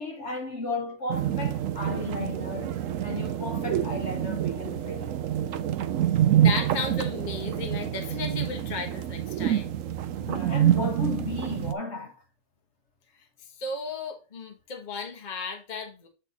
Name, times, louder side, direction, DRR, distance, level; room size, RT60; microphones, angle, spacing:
voice 1, 0.0-2.8 3.0-5.2 10.1-12.2, left 3 dB, 50° left, 1.5 m, -34 dB
sound 1, 1.1-11.7, right 11 dB, 65° right, 0.9 m, -27 dB
voice 2, 6.4-9.8 13.6-16.1, left 4 dB, 30° left, 1.2 m, -34 dB
8.0 x 4.2 x 4.1 m
omnidirectional pair, 1.7 m